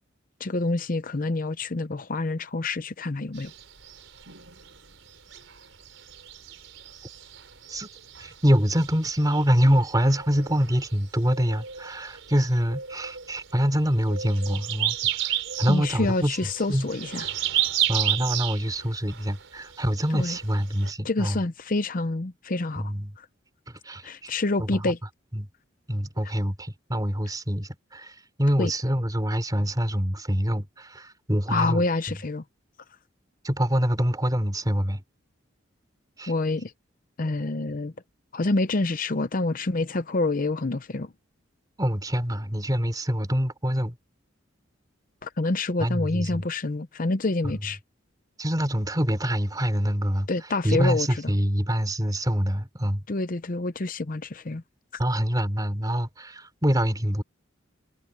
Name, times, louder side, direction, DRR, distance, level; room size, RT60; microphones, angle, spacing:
voice 1, 0.4-3.5 15.7-17.3 20.1-20.4 21.0-22.9 24.0-25.0 28.6-28.7 31.5-32.4 36.3-36.7 37.2-37.9 38.3-41.1 45.2-47.8 50.3-51.1 53.1-54.6, left 2 dB, 45° left, 0.7 m, -27 dB
sound 1, 3.4-20.9, right 11 dB, 90° right, 4.5 m, -33 dB
voice 2, 8.2-16.9 17.9-21.4 22.8-23.2 23.8-24.3 24.6-24.9 25.3-25.5 25.9-32.2 33.4-35.0 36.2-36.3 41.8-44.0 45.8-46.4 48.4-50.3 50.6-53.0 55.0-57.2, equal, 20° right, 3.5 m, -25 dB
head